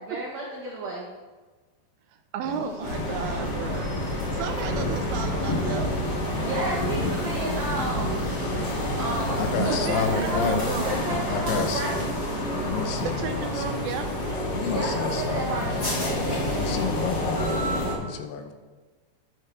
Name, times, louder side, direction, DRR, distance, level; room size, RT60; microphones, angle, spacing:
voice 1, 0.1-1.1 6.4-10.5 10.8-12.0 14.7-17.0, right 2 dB, 60° right, -5 dB, 2.1 m, -32 dB
voice 2, 2.3-3.9 4.3-5.9 9.6-11.0 11.5-11.7 13.0-14.1 16.9-17.0 17.8-17.9, right 8 dB, 90° right, 6 dB, 2.1 m, -33 dB
sound 1, 2.4-12.7, right 2 dB, 55° left, 5.0 m, -39 dB
sound 2, 2.8-17.9, left 1 dB, 30° left, 2.5 m, -28 dB
voice 3, 9.4-10.7 11.3-11.8 12.6-13.6 14.5-15.6 16.5-18.5, left 6 dB, 75° left, 6 dB, 2.7 m, -30 dB
10.5 x 6.5 x 4.7 m, 1.3 s
omnidirectional pair, 4.9 m